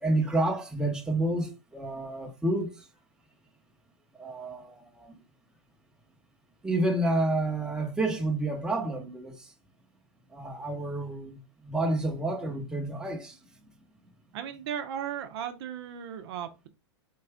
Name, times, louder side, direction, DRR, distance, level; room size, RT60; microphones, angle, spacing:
voice 1, 0.0-2.9 4.1-5.2 6.6-9.5 10.3-13.4, right 2 dB, 5° right, 0.9 m, -29 dB
voice 2, 14.3-16.7, right 9 dB, 60° right, 0.7 m, -36 dB
4.7 x 2.5 x 3.4 m
hypercardioid pair, 125°, 15 cm